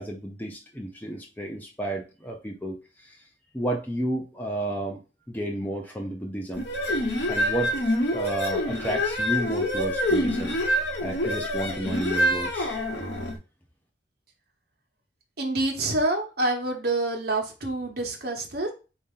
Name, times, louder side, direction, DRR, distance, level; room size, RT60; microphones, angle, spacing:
voice 1, 0.0-2.8 3.5-5.0 5.3-6.6 7.3-10.6 11.0-12.7, right 1 dB, 10° left, 1 dB, 0.5 m, -31 dB
sound 1, 6.6-13.4, equal, 55° left, 1.1 m, -26 dB
voice 2, 15.4-18.7, right 2 dB, 50° right, 2 dB, 1.1 m, -27 dB
4.2 x 2.8 x 3.6 m, 0.32 s
head